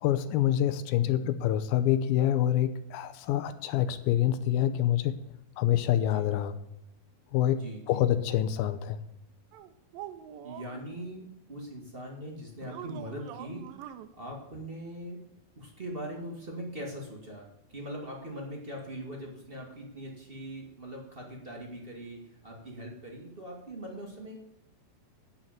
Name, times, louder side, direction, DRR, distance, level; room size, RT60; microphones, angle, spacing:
voice 1, 0.0-5.2 5.6-6.6 7.3-7.6 7.9-9.0, left 11 dB, 80° left, 11 dB, 2.4 m, -26 dB
voice 2, 7.5-8.0 10.4-13.7 14.1-15.2 15.5-17.5 17.7-24.6, equal, 30° right, 0 dB, 1.1 m, -41 dB
sound 1, 9.5-10.8 12.6-14.1, right 11 dB, 75° right, 2.2 m, -44 dB
9.5 x 6.6 x 7.4 m, 0.83 s
omnidirectional pair, 4.5 m